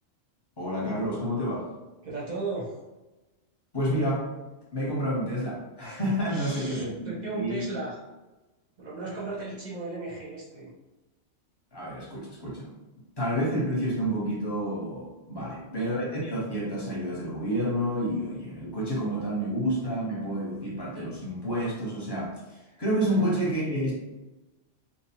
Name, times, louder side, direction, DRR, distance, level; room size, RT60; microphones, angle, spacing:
voice 1, 0.6-1.7 3.7-4.3 4.7-7.6 11.7-12.7 13.2-22.4 22.8-23.9, equal, 25° left, -6 dB, 0.8 m, -29 dB
voice 2, 2.0-2.8 6.3-8.0 8.8-10.7 15.4-15.7 22.7-23.3 23.7-23.9, right 3 dB, 45° right, -5 dB, 0.7 m, -37 dB
2.6 x 2.1 x 2.8 m, 1.1 s
omnidirectional pair, 1.2 m